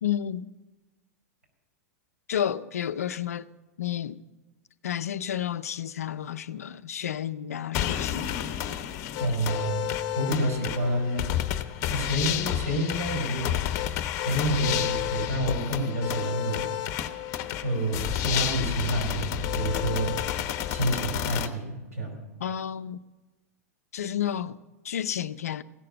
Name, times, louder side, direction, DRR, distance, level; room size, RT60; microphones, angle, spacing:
voice 1, 0.0-0.5 2.3-3.5 3.8-4.2 4.8-8.3 22.4-23.0 23.9-24.6 24.8-25.6, left 10 dB, 80° left, 0.5 m, -31 dB
sound 1, 7.7-21.5, left 12 dB, 45° left, 1.0 m, -30 dB
voice 2, 9.2-9.9 10.1-11.3 11.9-13.7 14.2-16.7 17.6-20.1 20.7-22.1, right 1 dB, 80° right, 4.8 m, -28 dB
16.0 x 6.7 x 8.6 m
hypercardioid pair, 95°, 8 cm